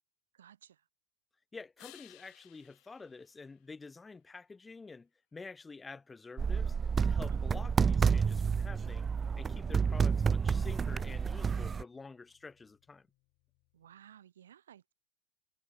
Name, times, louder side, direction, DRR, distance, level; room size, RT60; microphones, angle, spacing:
voice 1, 0.3-0.9 7.3-7.7 13.7-14.9, right 10 dB, 80° right, 7.7 m, -57 dB
voice 2, 1.5-6.8 7.0-9.1 9.4-13.1, left 4 dB, 15° left, 7.7 m, -49 dB
sound 1, 1.8-4.3 10.1-14.1, left 26 dB, 55° left, 4.5 m, -63 dB
sound 2, 6.4-11.8, right 6 dB, 25° right, 0.4 m, -29 dB
hypercardioid pair, 85°, 0 cm